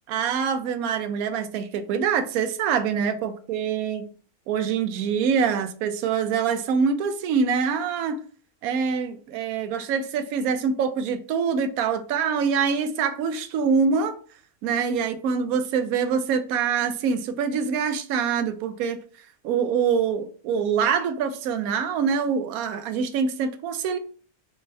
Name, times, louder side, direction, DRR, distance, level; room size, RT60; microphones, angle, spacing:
voice 1, 0.1-4.1 4.5-8.2 8.6-14.2 14.6-19.0 19.4-24.0, right 6 dB, 80° right, 1.0 m, -25 dB
3.4 x 3.2 x 3.3 m
omnidirectional pair, 1.5 m